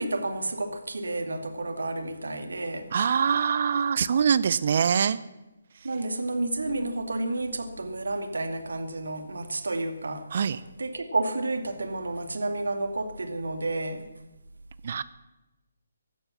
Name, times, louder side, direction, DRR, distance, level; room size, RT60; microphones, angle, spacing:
voice 1, 0.0-2.9 5.8-10.2 10.5-14.1, right 2 dB, 65° right, 8 dB, 2.4 m, -31 dB
voice 2, 2.9-5.2 10.3-10.6 14.8-15.0, right 7 dB, 45° right, 17 dB, 0.6 m, -24 dB
16.0 x 12.0 x 7.3 m, 1.0 s
figure-of-eight pair, 140°, 0 cm